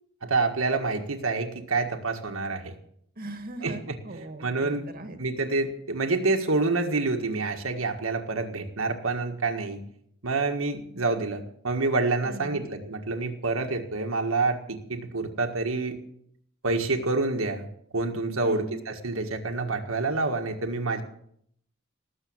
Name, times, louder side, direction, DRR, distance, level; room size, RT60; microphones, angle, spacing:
voice 1, 0.2-2.7 3.6-3.9 4.4-4.9 5.2-9.8 10.2-16.0 16.6-17.6 17.9-21.0, right 3 dB, 75° right, 3 dB, 1.7 m, -27 dB
voice 2, 3.2-5.2 12.2-12.7 18.4-18.8, right 2 dB, 45° right, 7 dB, 1.8 m, -39 dB
19.0 x 7.5 x 8.7 m, 0.68 s
head